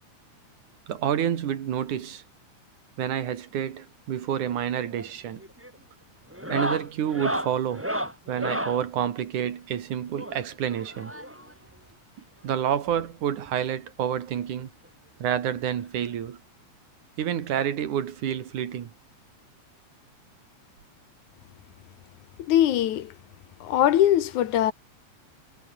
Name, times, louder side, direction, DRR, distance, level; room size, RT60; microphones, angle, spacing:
voice 1, 0.9-2.2 3.0-5.4 6.5-7.9 8.3-11.1 12.4-14.7 15.2-16.4 17.2-18.9, right 9 dB, 80° right, 3.4 m, -28 dB
sound 1, 4.9-5.1 5.4-5.8 6.3-8.8 10.1-11.5 12.6-12.7 12.9-13.0 13.5-13.6 14.8-14.9 16.3-16.4, equal, 5° right, 7.5 m, -32 dB
voice 2, 22.4-23.1 23.6-24.7, left 12 dB, 75° left, 2.7 m, -21 dB
omnidirectional pair, 3.5 m